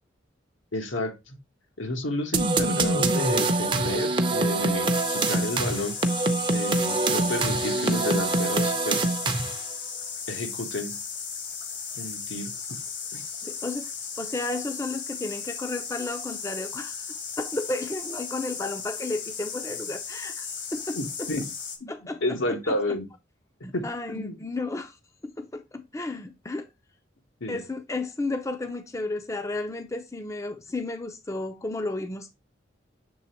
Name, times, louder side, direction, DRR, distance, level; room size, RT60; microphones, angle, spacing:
voice 1, 0.7-1.4 1.8-6.0 6.5-9.1 10.3-10.9 11.9-12.5 13.1-13.2 20.9-21.4 21.8-21.9 22.2-23.1 23.7-24.4 27.4-27.6, left 1 dB, 85° left, 1.3 m, -31 dB
sound 1, 2.3-9.7, right 2 dB, 25° right, 0.6 m, -24 dB
sound 2, 4.9-21.8, left 6 dB, 70° left, 1.5 m, -36 dB
voice 2, 13.4-13.9 14.2-17.1 17.4-21.3 21.9-22.4 22.6-22.7 23.6-25.0 25.4-26.7 27.5-32.3, left 2 dB, 15° left, 0.5 m, -33 dB
7.0 x 3.4 x 4.2 m
head